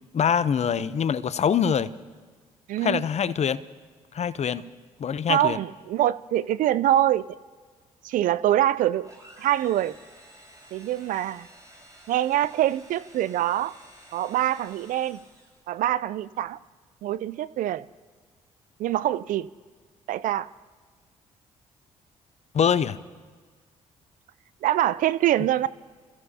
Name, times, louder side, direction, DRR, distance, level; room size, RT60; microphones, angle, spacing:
voice 1, 0.1-1.9 2.8-3.6 4.1-4.6 5.0-5.6 22.5-23.0, left 7 dB, 50° left, 15 dB, 0.7 m, -24 dB
voice 2, 2.7-3.0 5.3-7.2 8.0-9.1 9.4-10.0 10.7-11.5 12.1-13.7 14.1-15.2 15.7-16.6 17.0-17.9 18.8-19.5 20.1-20.5 24.6-25.7, right 12 dB, 70° right, 18 dB, 0.5 m, -24 dB
sound 1, 9.0-15.7, right 1 dB, 25° right, 4.6 m, -52 dB
27.5 x 15.0 x 2.9 m, 1.5 s
hypercardioid pair, 50°, 14 cm